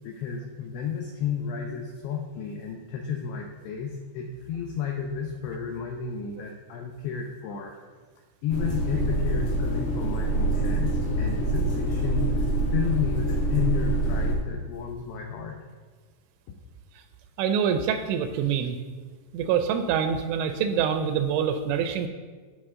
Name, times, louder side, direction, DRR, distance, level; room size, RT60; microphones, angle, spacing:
voice 1, 0.0-7.7 8.4-15.6, left 7 dB, 85° left, 1 dB, 2.3 m, -32 dB
sound 1, 8.5-14.3, right 2 dB, 60° left, 1.8 m, -25 dB
voice 2, 17.4-18.8 19.3-22.1, right 7 dB, 85° right, 8 dB, 2.8 m, -25 dB
15.5 x 5.3 x 3.7 m, 1.5 s
omnidirectional pair, 5.6 m